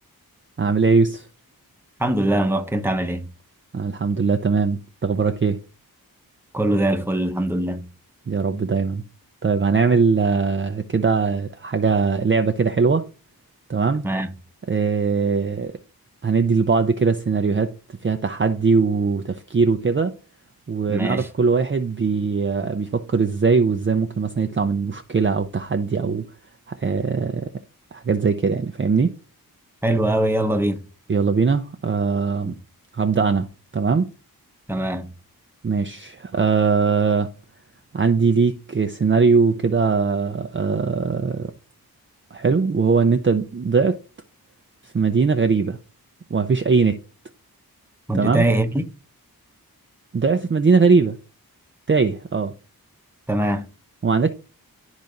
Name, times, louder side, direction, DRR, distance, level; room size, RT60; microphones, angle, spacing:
voice 1, 0.6-1.3 3.7-5.6 8.3-9.0 9.4-13.1 13.7-14.0 14.7-15.7 16.2-20.1 20.7-26.3 26.7-27.5 27.9-29.1 31.1-32.5 32.9-34.1 35.6-37.3 37.9-41.5 42.3-44.0 44.8-45.8 46.3-47.0 48.1-48.4 50.1-51.2 51.9-52.5 54.0-54.3, right 5 dB, 30° right, 0.5 m, -20 dB
voice 2, 2.0-3.3 6.5-7.9 14.0-14.3 20.9-21.3 29.8-30.8 32.4-32.5 34.7-35.1 48.1-48.8 53.3-53.7, right 1 dB, 5° right, 0.9 m, -22 dB
12.0 x 4.0 x 2.5 m
wide cardioid pair, 70°, 37 cm